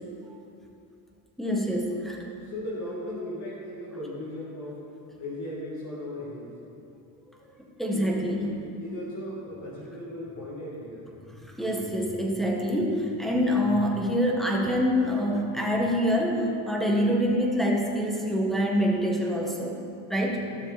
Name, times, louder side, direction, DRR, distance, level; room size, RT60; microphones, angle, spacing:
voice 1, 1.4-2.2 7.8-8.5 11.6-19.8 20.1-20.5, equal, ahead, -1 dB, 1.6 m, -25 dB
voice 2, 2.4-4.8 5.2-6.5 7.9-8.3 8.8-11.1 20.4-20.5, left 1 dB, 40° left, -6 dB, 2.3 m, -37 dB
13.0 x 6.9 x 4.2 m, 2.6 s
supercardioid pair, 90°, 42 cm